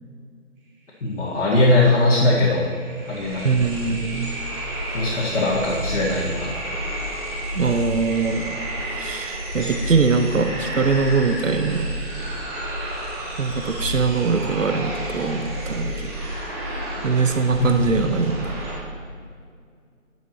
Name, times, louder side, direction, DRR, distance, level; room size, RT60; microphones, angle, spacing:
voice 1, 1.0-2.7 3.1-3.5 4.9-6.5 17.6-17.7, left 2 dB, 70° left, -6 dB, 2.0 m, -20 dB
sound 1, 1.7-1.8 2.1-18.8, equal, 15° right, 1.4 m, -30 dB
voice 2, 3.4-4.3 7.5-8.6 9.0-11.9 13.4-16.1 16.7-18.6, right 5 dB, 80° right, 7 dB, 0.8 m, -22 dB
10.5 x 9.2 x 3.0 m, 2.2 s
figure-of-eight pair, 155°, 38 cm